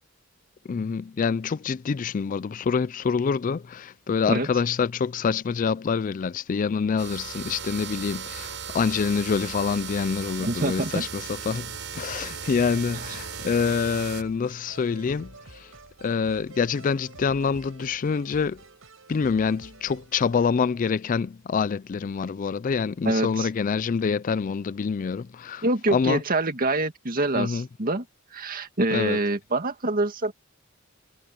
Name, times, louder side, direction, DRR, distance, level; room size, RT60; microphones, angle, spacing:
voice 1, 0.7-15.7 16.0-18.6 19.1-25.6 25.9-26.2 27.4-27.7 28.9-29.2, left 5 dB, 40° left, 0.4 m, -26 dB
sound 1, 7.0-14.2, right 7 dB, 65° right, 6.9 m, -37 dB
voice 2, 10.4-11.1 23.0-23.5 25.6-28.0 28.3-30.3, right 2 dB, 45° right, 2.1 m, -25 dB
sound 2, 12.1-20.4, right 3 dB, 90° right, 5.3 m, -49 dB
head